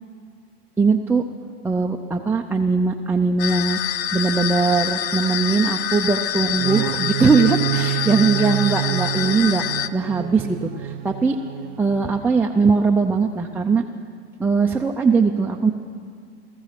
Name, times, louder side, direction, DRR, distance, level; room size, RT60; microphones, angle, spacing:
voice 1, 0.8-1.2 1.6-9.6 9.9-11.4 11.8-13.8 14.4-15.7, right 4 dB, 5° right, 0 dB, 0.4 m, -20 dB
sound 1, 3.4-9.9, left 11 dB, 45° left, 0.6 m, -26 dB
sound 2, 6.5-12.4, right 17 dB, 70° right, 0.5 m, -28 dB
17.0 x 14.0 x 5.9 m, 2.3 s
supercardioid pair, 130°, 33 cm